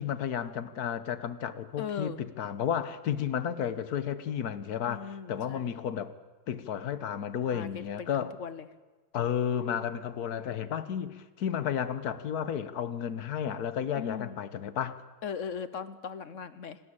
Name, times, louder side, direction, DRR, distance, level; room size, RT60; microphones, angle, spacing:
voice 1, 0.0-6.1 6.5-8.3 9.1-15.0, left 8 dB, 70° left, 14 dB, 1.5 m, -32 dB
voice 2, 1.8-2.2 4.9-5.8 7.5-8.7 14.0-14.4 15.2-16.8, left 6 dB, 55° left, 14 dB, 1.1 m, -39 dB
26.5 x 13.0 x 8.8 m, 1.3 s
omnidirectional pair, 1.7 m